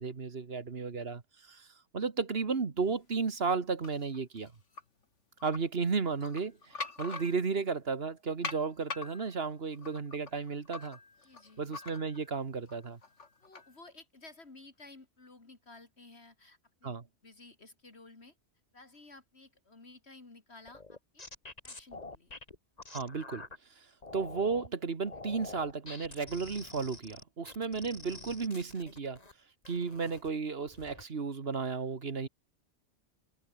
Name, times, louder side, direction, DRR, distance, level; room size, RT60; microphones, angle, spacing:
voice 1, 0.0-1.7 1.9-4.5 5.4-11.0 11.6-13.0 16.8-17.0 22.9-23.5 24.1-29.2 29.7-32.3, right 5 dB, 55° right, 1.8 m, -34 dB
sound 1, 3.8-4.8 5.4-5.6 6.1-7.7 8.4-12.3 12.7-13.7, left 4 dB, 80° left, 2.9 m, -44 dB
voice 2, 11.2-11.7 13.4-18.3 18.7-21.3 21.6-22.3, left 3 dB, 60° left, 3.1 m, -55 dB
sound 2, 20.7-23.6 24.0-24.7 25.1-29.3 29.6-30.3 30.7-31.0, left 3 dB, 35° left, 2.0 m, -47 dB
omnidirectional pair, 1.2 m